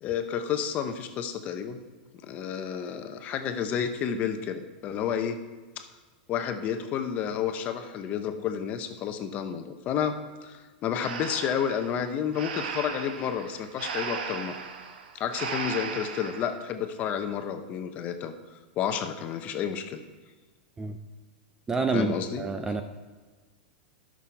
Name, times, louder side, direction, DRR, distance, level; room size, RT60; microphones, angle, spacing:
voice 1, 0.0-1.8 2.2-5.4 5.8-5.9 6.3-14.6 15.1-18.3 18.8-20.0 21.9-22.7, left 8 dB, 30° left, 8 dB, 0.7 m, -31 dB
Breathing, 11.0-16.5, right 6 dB, 75° right, 1.0 m, -37 dB
voice 2, 21.7-22.8, right 4 dB, 10° right, 7 dB, 0.3 m, -28 dB
12.5 x 6.2 x 4.5 m, 1.3 s
supercardioid pair, 155°, 5 cm